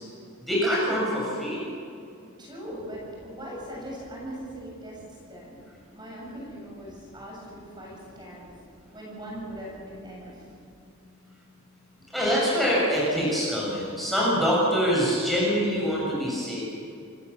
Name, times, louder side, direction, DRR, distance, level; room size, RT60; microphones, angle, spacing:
voice 1, 0.4-1.6 12.1-16.6, equal, ahead, -6 dB, 7.4 m, -24 dB
voice 2, 2.4-5.6 5.9-8.5 8.9-10.5, equal, 20° right, -4 dB, 7.7 m, -40 dB
28.5 x 19.5 x 7.3 m, 2.5 s
head